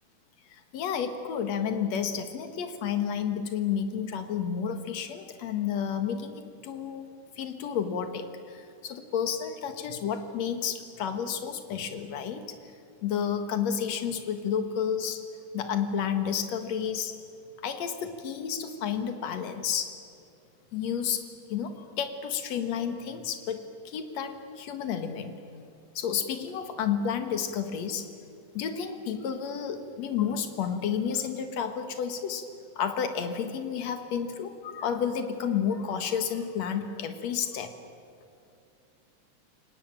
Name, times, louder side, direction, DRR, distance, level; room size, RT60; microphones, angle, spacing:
voice 1, 0.7-7.1 7.4-12.6 13.0-15.2 15.5-17.1 17.6-19.9 20.7-21.2 21.5-25.4 26.0-28.1 28.5-32.4 32.8-37.7, left 7 dB, 60° left, 7 dB, 2.6 m, -31 dB
29.5 x 18.5 x 9.0 m, 2.5 s
omnidirectional pair, 3.6 m